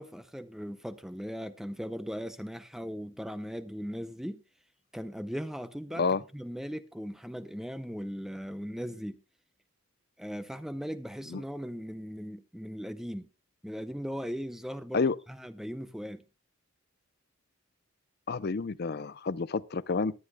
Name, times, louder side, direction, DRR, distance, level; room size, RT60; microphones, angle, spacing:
voice 1, 0.0-4.4 4.9-6.1 6.3-9.2 10.2-13.3 13.6-16.2, equal, ahead, 0.5 m, -38 dB
voice 2, 18.3-20.1, left 4 dB, 45° left, 0.5 m, -29 dB
21.0 x 10.0 x 2.2 m
head